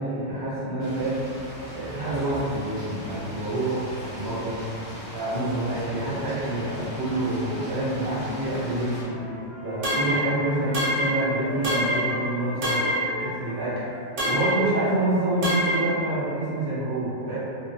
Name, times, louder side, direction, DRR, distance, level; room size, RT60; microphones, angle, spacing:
voice 1, 0.0-3.9 4.1-4.7 5.1-9.2 9.6-13.9 14.3-17.4, right 1 dB, 35° right, -10 dB, 0.4 m, -27 dB
sound 1, 0.8-9.0, equal, 45° left, 1.0 m, -39 dB
Wind instrument woodwind instrument, 8.7-15.0, left 1 dB, 80° left, 1.1 m, -39 dB
sound 2, 9.8-10.3 10.7-11.2 11.6-12.1 12.6-13.1 14.2-14.6 15.4-15.9, right 1 dB, 65° right, 1.0 m, -25 dB
2.4 x 2.1 x 2.6 m, 2.7 s
omnidirectional pair, 1.3 m